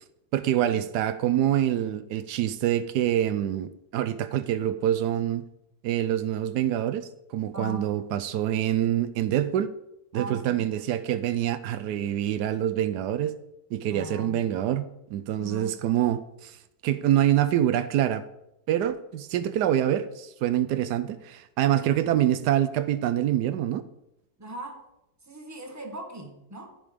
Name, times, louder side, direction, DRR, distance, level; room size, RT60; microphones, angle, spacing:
voice 1, 0.3-5.4 5.8-9.7 10.1-13.3 13.7-16.5 16.8-18.2 18.7-23.8, right 11 dB, 85° right, 13 dB, 1.2 m, -26 dB
voice 2, 7.5-7.8 10.1-10.7 13.9-14.4 15.4-15.8 24.4-24.9 25.2-26.8, equal, 10° right, 2 dB, 1.3 m, -39 dB
14.0 x 5.3 x 5.1 m, 0.85 s
omnidirectional pair, 1.7 m